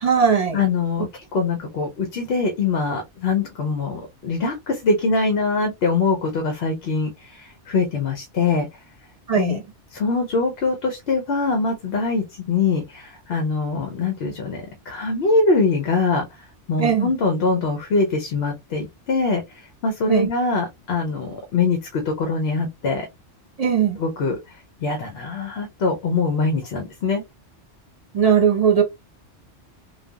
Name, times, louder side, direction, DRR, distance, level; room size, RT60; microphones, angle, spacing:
voice 1, 0.0-0.6 9.3-9.6 16.8-17.1 20.1-20.3 23.6-24.0 28.1-28.8, right 7 dB, 35° right, 0.9 m, -18 dB
voice 2, 0.5-8.7 9.4-9.6 9.9-16.2 16.7-19.4 19.8-23.1 24.0-24.4 24.8-27.2, left 4 dB, 65° left, 0.8 m, -23 dB
3.2 x 2.1 x 2.2 m
omnidirectional pair, 1.2 m